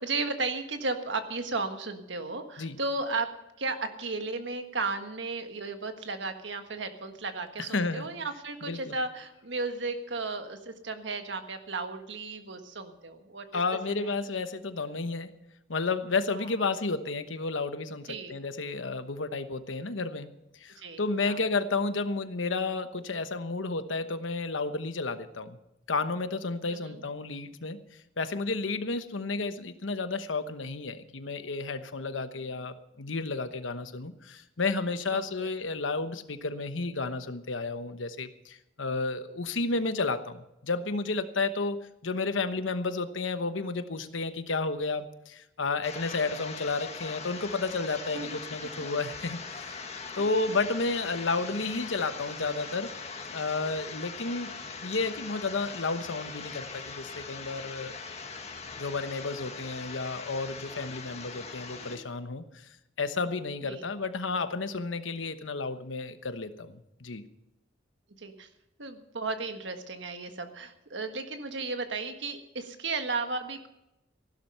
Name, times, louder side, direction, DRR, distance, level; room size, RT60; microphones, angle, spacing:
voice 1, 0.0-3.3 3.6-13.6 14.0-14.1 18.1-18.4 20.8-21.4 26.7-27.0 35.1-35.5 48.1-48.4 50.5-50.6 63.6-63.8 68.2-68.5 68.8-73.7, right 3 dB, 70° right, 7 dB, 1.6 m, -34 dB
voice 2, 7.6-8.1 8.6-8.9 13.5-15.3 15.7-20.3 20.6-25.6 25.9-27.8 28.2-49.8 50.1-52.9 53.3-54.5 54.8-57.9 58.8-67.2, left 3 dB, 90° left, 10 dB, 1.1 m, -32 dB
sound 1, 45.8-62.0, left 5 dB, 35° left, 1.6 m, -41 dB
15.5 x 12.0 x 5.7 m, 0.89 s
head